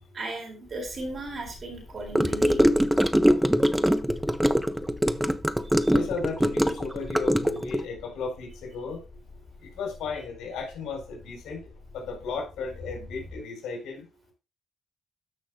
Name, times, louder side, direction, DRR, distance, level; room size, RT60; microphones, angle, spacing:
voice 1, 0.1-2.7 5.8-5.9, right 2 dB, 45° right, 4 dB, 4.1 m, -36 dB
sound 1, 0.8-13.4, left 2 dB, 50° left, 4.4 m, -48 dB
Gurgling / Car passing by / Sink (filling or washing), 2.1-7.8, equal, 5° right, 0.7 m, -23 dB
voice 2, 5.9-9.0 9.6-14.0, left 4 dB, 85° left, 2 dB, 4.5 m, -35 dB
13.5 x 6.4 x 2.2 m, 0.30 s
cardioid pair, 90°, 0 cm